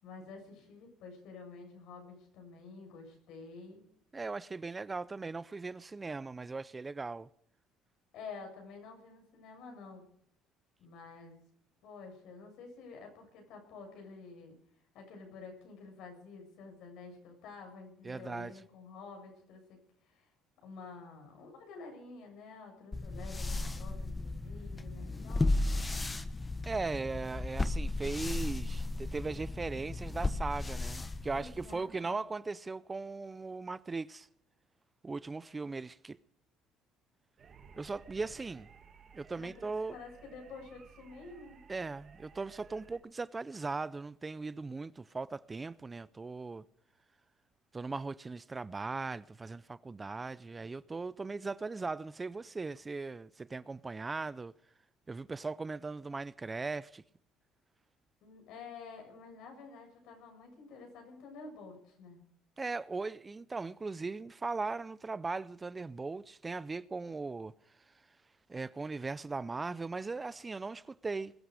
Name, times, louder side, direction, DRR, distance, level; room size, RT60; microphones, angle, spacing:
voice 1, 0.0-3.8 8.1-10.0 10.8-11.4 11.8-14.6 14.9-20.3 20.6-25.8 31.3-32.2 39.4-41.6 58.2-62.2, left 4 dB, 75° left, 7.4 m, -50 dB
voice 2, 4.1-7.3 18.0-18.5 26.7-34.3 35.0-36.2 37.8-38.7 39.1-40.0 41.7-46.7 47.7-54.5 55.1-57.0 62.6-67.5 68.5-71.3, right 3 dB, 20° right, 0.5 m, -38 dB
sound 1, 22.9-31.8, left 2 dB, 20° left, 1.0 m, -35 dB
sound 2, 37.4-43.0, right 6 dB, 40° right, 2.3 m, -57 dB
21.0 x 12.5 x 4.9 m
cardioid pair, 100°, 0 cm